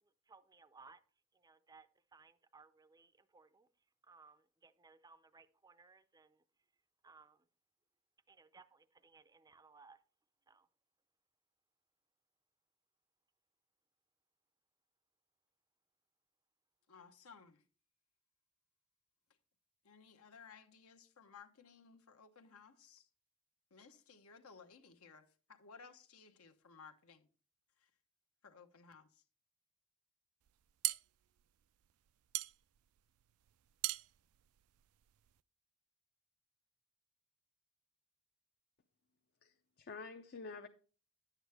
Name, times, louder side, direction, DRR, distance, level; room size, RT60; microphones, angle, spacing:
voice 1, 0.0-1.0 1.3-6.4 7.0-7.5 8.3-10.0 10.5-10.7, right 4 dB, 15° right, 0.5 m, -63 dB
voice 2, 16.9-17.6 19.8-23.1 23.7-27.3 28.4-29.1, left 5 dB, 80° left, 1.0 m, -59 dB
sound 1, 30.5-35.4, right 18 dB, 75° right, 0.3 m, -42 dB
voice 3, 39.4-40.7, left 4 dB, 50° left, 0.6 m, -49 dB
10.5 x 8.0 x 3.4 m
head